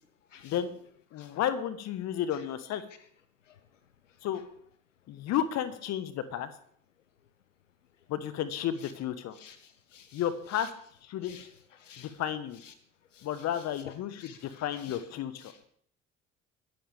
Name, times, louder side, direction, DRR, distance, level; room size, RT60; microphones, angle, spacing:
voice 1, 1.1-2.8 4.2-4.4 5.1-6.5 8.1-9.4 10.1-10.7 11.0-11.4 12.0-12.6 13.2-15.5, left 10 dB, 45° left, 13 dB, 1.4 m, -32 dB
voice 2, 9.4-10.2 10.5-10.7 11.2-11.5 11.8-12.1 12.6-12.7 13.1-13.9 14.2-15.0 15.4-15.6, left 8 dB, 80° left, 12 dB, 0.8 m, -50 dB
22.0 x 10.5 x 3.5 m, 0.65 s
figure-of-eight pair, 60°, 37 cm